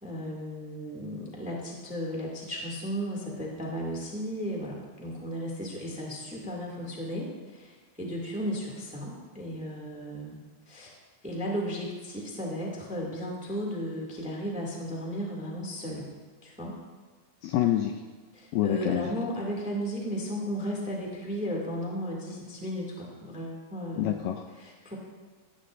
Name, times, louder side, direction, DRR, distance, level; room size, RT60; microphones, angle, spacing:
voice 1, 0.0-10.4 10.7-16.1 16.4-16.8 18.3-24.2 24.6-24.9, equal, 5° right, -2 dB, 1.3 m, -35 dB
voice 2, 17.4-17.9 18.5-19.1 24.0-24.4, left 12 dB, 80° left, 5 dB, 2.0 m, -26 dB
17.5 x 13.0 x 2.6 m, 1.4 s
omnidirectional pair, 4.3 m